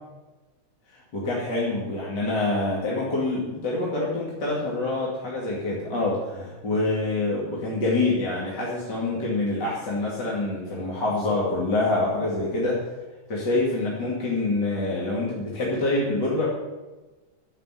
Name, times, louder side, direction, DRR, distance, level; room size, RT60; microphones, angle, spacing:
voice 1, 0.9-12.8 13.3-16.5, left 2 dB, 55° left, -5 dB, 3.1 m, -26 dB
12.0 x 7.6 x 9.2 m, 1.2 s
omnidirectional pair, 2.2 m